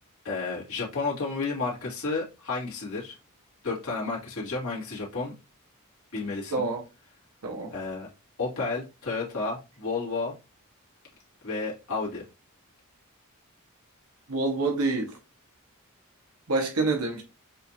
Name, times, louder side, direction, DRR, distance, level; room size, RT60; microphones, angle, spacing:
voice 1, 0.2-3.2 3.6-5.3 6.1-6.7 7.7-8.1 8.4-10.3 11.4-12.2, left 3 dB, 65° left, 2.1 m, -31 dB
voice 2, 14.3-15.1 16.5-17.2, right 3 dB, 80° right, 1.3 m, -27 dB
6.6 x 2.6 x 2.8 m
head